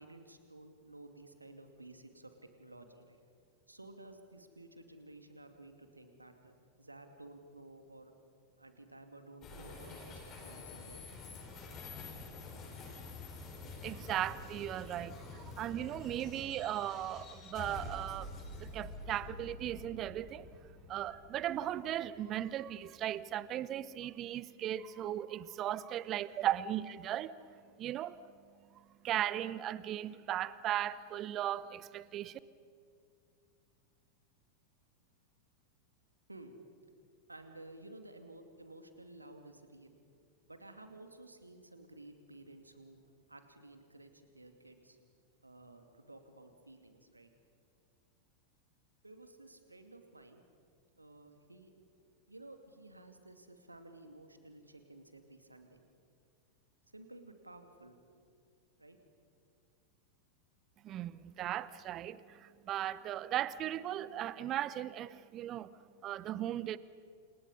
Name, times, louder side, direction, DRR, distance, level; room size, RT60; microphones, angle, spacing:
voice 1, 0.0-2.3 2.6-3.2 3.7-8.1 8.6-11.0 36.3-36.5 37.3-40.0 40.5-43.0 43.3-45.0 45.4-47.3 49.0-50.4 50.9-51.7 52.3-55.8 56.9-58.0 58.8-59.0, right 2 dB, 85° right, 2.4 m, -54 dB
sound 1, 9.4-22.8, left 3 dB, 30° left, 5.8 m, -48 dB
voice 2, 13.8-20.5 20.9-27.4 27.8-28.2 28.7-32.4 60.8-65.7 66.0-66.8, right 12 dB, 35° right, 0.8 m, -37 dB
29.0 x 28.5 x 5.5 m
figure-of-eight pair, 90°, 0 cm